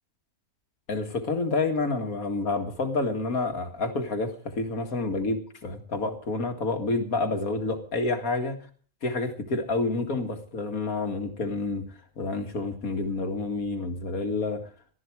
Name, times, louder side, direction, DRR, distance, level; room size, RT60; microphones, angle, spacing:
voice 1, 0.9-8.6 9.0-11.9 12.2-14.6, left 3 dB, 75° left, 6 dB, 2.4 m, -29 dB
19.0 x 13.0 x 4.7 m, 0.43 s
omnidirectional pair, 1.5 m